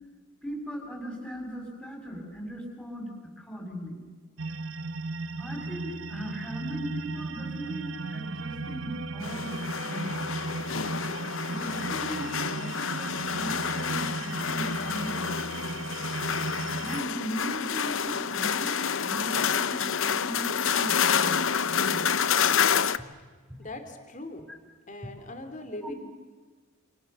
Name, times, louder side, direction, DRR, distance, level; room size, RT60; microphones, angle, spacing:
voice 1, 0.4-4.0 5.4-10.3 11.5-15.3 16.8-21.4 21.6-22.1 25.8-26.0, equal, 5° left, 0 dB, 7.0 m, -38 dB
sound 1, 4.4-17.0, right 3 dB, 70° right, 1.2 m, -36 dB
sound 2, 9.2-23.0, left 7 dB, 65° left, 0.8 m, -28 dB
voice 2, 23.6-24.5 24.9-25.9, left 1 dB, 35° left, 7 dB, 3.0 m, -40 dB
29.5 x 28.5 x 6.9 m, 1.4 s
head